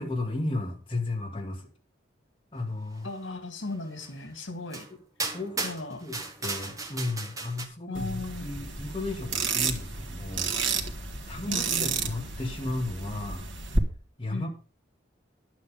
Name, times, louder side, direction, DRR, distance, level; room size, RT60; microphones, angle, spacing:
voice 1, 0.0-1.7 2.5-3.1 5.3-5.7 6.0-10.5 10.9-13.4 14.2-14.5, left 2 dB, 25° left, 1 dB, 2.2 m, -34 dB
voice 2, 3.0-4.9 5.6-6.0 7.9-8.6 11.5-12.3 14.3-14.5, left 2 dB, 90° left, 8 dB, 2.2 m, -37 dB
sound 1, 4.0-4.1 4.7-4.9 5.2-7.7, right 3 dB, 15° right, 1.6 m, -35 dB
sound 2, 7.9-13.8, right 4 dB, 80° right, 1.8 m, -31 dB
11.0 x 8.5 x 5.2 m, 0.35 s
head